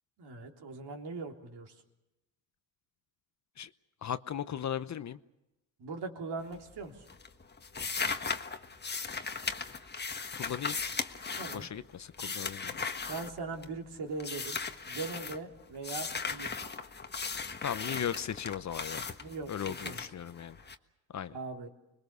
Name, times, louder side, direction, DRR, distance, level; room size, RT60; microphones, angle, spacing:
voice 1, 0.2-1.7 5.8-7.0 11.4-11.7 13.1-14.6 14.9-16.6 19.2-19.5 19.8-20.0 21.3-21.7, right 4 dB, 60° right, 3.6 m, -40 dB
voice 2, 4.0-5.2 10.3-10.8 11.5-12.8 17.6-19.1 19.5-20.6 21.1-21.4, left 9 dB, 40° left, 0.9 m, -37 dB
sound 1, 6.4-6.8 7.1-13.8 14.2-15.4 15.8-20.7, left 4 dB, 20° left, 1.4 m, -37 dB
25.5 x 21.5 x 6.8 m
supercardioid pair, 80°, 45 cm